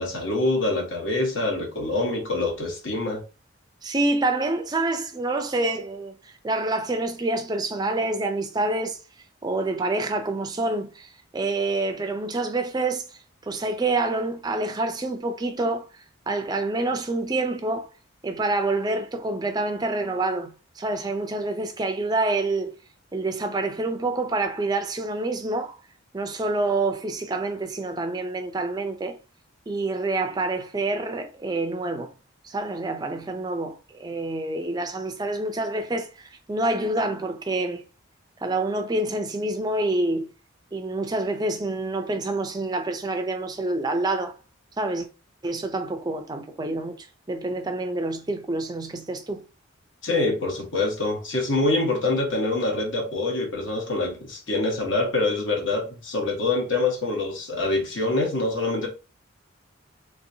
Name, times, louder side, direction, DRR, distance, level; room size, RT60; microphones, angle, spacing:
voice 1, 0.0-3.2 50.0-58.9, left 2 dB, 60° left, 1.1 m, -25 dB
voice 2, 3.8-9.0 9.4-13.0 13.5-15.8 16.3-17.9 18.2-22.7 23.1-25.8 26.1-29.1 29.7-32.1 32.4-37.8 38.4-40.3 40.7-44.3 44.8-45.1 45.4-49.4, right 2 dB, 20° right, 0.4 m, -27 dB
3.4 x 2.6 x 2.7 m
head